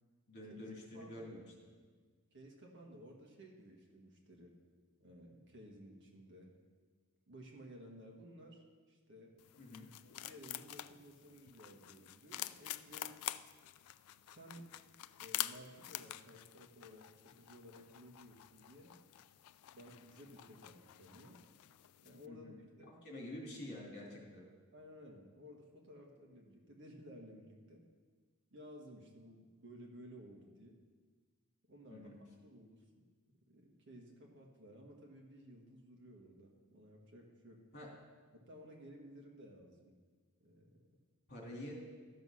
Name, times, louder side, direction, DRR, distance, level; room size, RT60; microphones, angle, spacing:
voice 1, 0.3-1.4 9.6-9.9 22.3-22.5 23.0-24.4 31.9-32.1 37.7-37.9 41.3-41.7, left 1 dB, 50° left, -2 dB, 2.8 m, -48 dB
voice 2, 0.9-1.3 2.3-4.5 5.0-6.5 7.3-9.4 10.0-13.2 14.2-14.7 15.2-17.1 17.3-19.0 19.7-21.4 22.0-22.5 22.8-23.2 24.1-24.2 24.7-27.8 28.5-30.8 31.7-32.1 32.4-32.9 33.5-37.6 38.3-39.9 40.4-40.8, equal, 55° right, 1 dB, 1.7 m, -56 dB
sound 1, 9.4-22.3, left 14 dB, 80° left, 0.3 m, -48 dB
13.0 x 6.3 x 5.7 m, 1.5 s
head